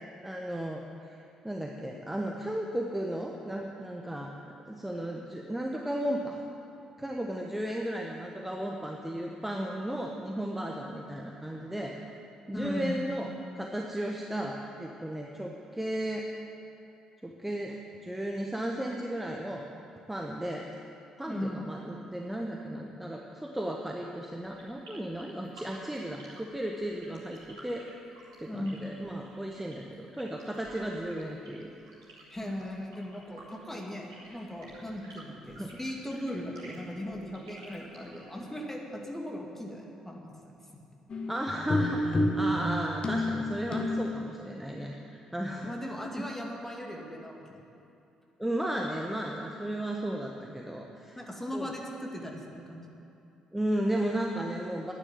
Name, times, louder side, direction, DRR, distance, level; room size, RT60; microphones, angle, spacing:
voice 1, 0.2-6.4 7.0-11.9 12.5-13.3 13.5-16.3 17.2-19.7 20.1-20.7 21.2-27.9 28.4-31.8 35.6-35.7 41.3-46.2 48.4-51.2 51.5-51.7 53.5-54.9, right 1 dB, 5° right, 1 dB, 1.2 m, -35 dB
voice 2, 12.5-13.0 21.3-21.6 28.5-28.9 32.3-40.3 45.5-47.6 51.2-52.8, left 1 dB, 10° left, 0 dB, 2.6 m, -38 dB
sound 1, 24.4-38.4, right 2 dB, 75° right, 3.5 m, -53 dB
sound 2, 41.1-44.2, left 1 dB, 35° left, 1.5 m, -29 dB
11.5 x 9.8 x 9.4 m, 2.8 s
figure-of-eight pair, 45°, 3 cm